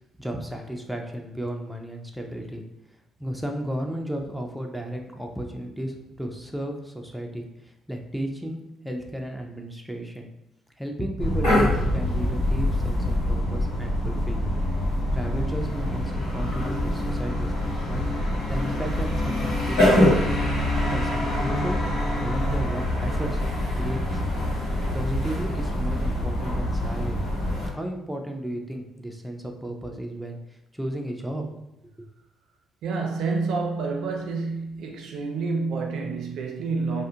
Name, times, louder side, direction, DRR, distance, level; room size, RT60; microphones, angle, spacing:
voice 1, 0.2-2.6 3.2-10.3 10.8-14.5 15.1-17.5 17.9-18.0 18.5-20.3 20.9-21.8 22.2-23.4 23.7-24.2 24.9-27.2 27.7-30.4 30.7-31.5, right 1 dB, ahead, 0.4 m, -33 dB
sound 1, 11.2-27.7, left 1 dB, 90° left, 1.1 m, -25 dB
voice 2, 32.8-37.0, right 4 dB, 75° right, 0.4 m, -28 dB
2.3 x 2.1 x 2.7 m
supercardioid pair, 70°, 0 cm